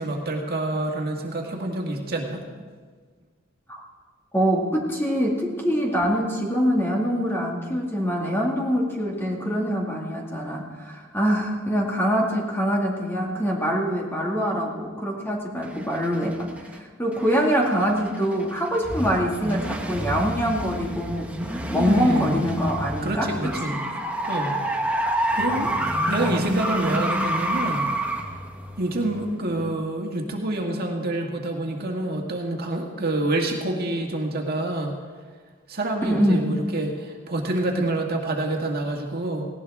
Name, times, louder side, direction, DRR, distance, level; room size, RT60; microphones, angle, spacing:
voice 1, 0.0-2.4 21.7-22.4 23.0-23.8 24.3-24.6 25.3-25.7 26.1-27.9 28.3-28.4 28.8-35.0 35.7-39.5, right 1 dB, 50° right, 1 dB, 1.9 m, -27 dB
voice 2, 4.3-16.5 17.0-23.8 36.0-36.5, equal, 10° left, -1 dB, 2.2 m, -24 dB
sound 1, 15.6-16.8 17.2-29.7, right 1 dB, 5° right, 1.2 m, -28 dB
18.5 x 17.5 x 3.6 m, 1.5 s
head